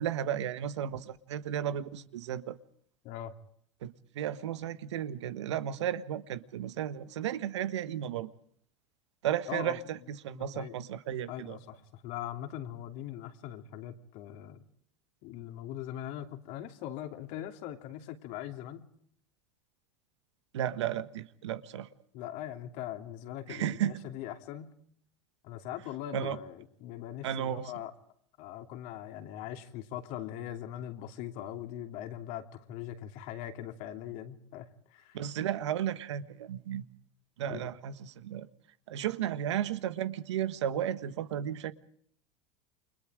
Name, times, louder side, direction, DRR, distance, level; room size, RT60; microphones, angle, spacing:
voice 1, 0.0-2.6 3.8-8.3 9.2-11.6 20.5-21.9 23.5-24.0 26.1-26.4 27.2-27.7 35.1-36.8 37.4-38.5 38.9-41.7, right 10 dB, 85° right, 1.4 m, -34 dB
voice 2, 3.0-3.3 9.5-9.8 10.3-10.8 11.3-14.7 15.2-18.9 22.1-24.7 25.4-27.9 28.4-35.2 37.5-37.7, left 11 dB, 60° left, 2.9 m, -41 dB
29.5 x 24.0 x 4.9 m
hypercardioid pair, 95°, 15 cm